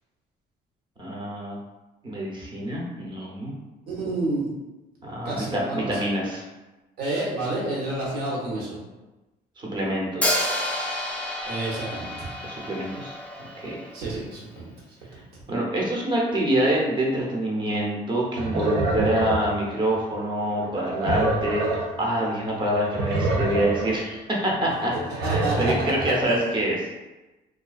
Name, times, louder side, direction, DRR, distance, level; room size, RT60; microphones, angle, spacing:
voice 1, 1.0-1.6 2.0-3.6 5.0-6.4 9.6-10.5 12.4-13.8 15.5-21.7 22.0-26.8, right 1 dB, 30° right, -3 dB, 0.7 m, -26 dB
voice 2, 3.9-4.5 5.2-6.0 7.0-8.8 11.4-12.3 13.9-14.7 24.9-26.4, right 2 dB, 70° right, -4 dB, 1.0 m, -29 dB
Hi-hat, 10.2-14.2, left 1 dB, 10° left, 0.4 m, -29 dB
sound 1, 18.2-20.1 20.6-22.1 22.4-22.5 22.7-24.0 24.5-26.1, right 2 dB, 85° right, 0.5 m, -27 dB
2.4 x 2.2 x 2.4 m, 1.1 s
cardioid pair, 110°, 17 cm